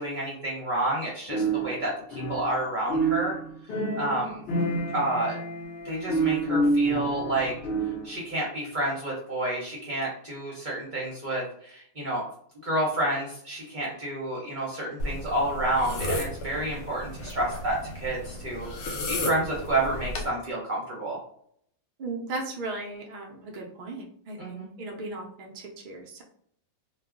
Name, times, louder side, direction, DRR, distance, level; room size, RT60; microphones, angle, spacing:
voice 1, 0.0-3.3 3.9-4.4 4.9-5.4 5.8-7.5 8.0-12.2 12.6-21.2 24.4-24.7, right 1 dB, 45° right, -4 dB, 0.7 m, -30 dB
sound 1, 1.3-2.6 2.9-8.2, right 2 dB, 60° left, 0.7 m, -28 dB
sound 2, 15.0-20.3, left 1 dB, 85° left, 1.1 m, -34 dB
voice 2, 22.0-26.2, right 2 dB, 80° right, 0 dB, 0.4 m, -37 dB
2.3 x 2.1 x 3.5 m, 0.64 s
omnidirectional pair, 1.5 m